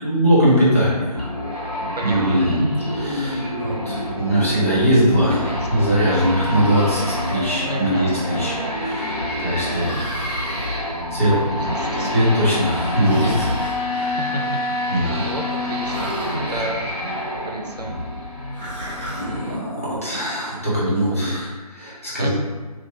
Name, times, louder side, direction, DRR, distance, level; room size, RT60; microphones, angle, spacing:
voice 1, 0.0-1.2 2.0-2.6 2.9-7.0 7.3-10.2 11.1-11.3 12.0-13.5 13.9-14.2 14.9-15.2 19.2-22.3, equal, 20° left, -9 dB, 0.6 m, -21 dB
sound 1, 1.1-19.5, left 1 dB, 70° left, 1.4 m, -27 dB
voice 2, 1.9-2.6 5.4-5.6 7.6-8.2 11.3-12.1 14.2-14.4 14.8-16.9 17.4-18.1 22.2-22.3, right 1 dB, 80° right, 1 dB, 0.6 m, -31 dB
Breathing, 6.5-7.4 9.8-10.7 13.0-13.8 15.9-16.4 18.5-19.3, right 1 dB, 15° right, 0.7 m, -33 dB
2.8 x 2.7 x 2.7 m, 1.4 s
figure-of-eight pair, 160°, 20 cm